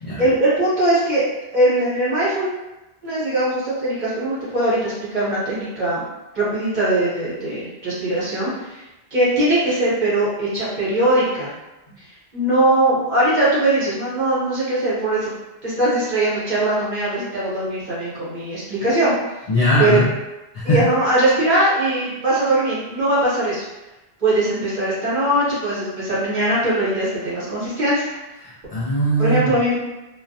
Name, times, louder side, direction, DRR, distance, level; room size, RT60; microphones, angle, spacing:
voice 1, 0.2-1.2 1.5-2.5 3.0-6.0 6.3-8.8 9.1-11.5 12.3-15.3 15.6-19.1 19.8-20.0 20.6-23.6 24.2-28.0 29.2-29.7, right 1 dB, 45° right, -9 dB, 0.9 m, -20 dB
voice 2, 19.5-20.1 20.5-20.9 28.4-29.5, equal, 50° left, -8 dB, 0.4 m, -20 dB
2.2 x 2.1 x 2.6 m, 1.0 s
omnidirectional pair, 1.1 m